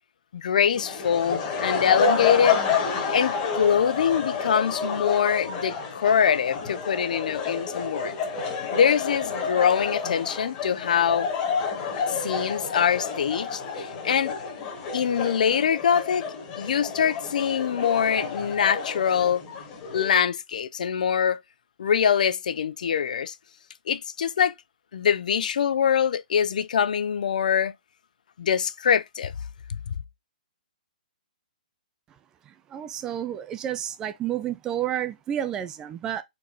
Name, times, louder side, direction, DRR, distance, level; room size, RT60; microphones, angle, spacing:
voice 1, 0.3-2.6 3.1-8.2 8.7-11.3 12.1-14.3 14.9-16.3 16.6-19.4 19.9-21.4 21.8-23.3 23.9-24.5 24.9-27.7 28.4-29.3 29.9-30.0, left 8 dB, 65° left, 0.5 m, -24 dB
sound 1, 0.7-20.1, left 5 dB, 25° left, 1.3 m, -29 dB
voice 2, 32.5-36.2, right 10 dB, 15° right, 0.4 m, -30 dB
4.3 x 3.9 x 3.0 m
hypercardioid pair, 160°, 5 cm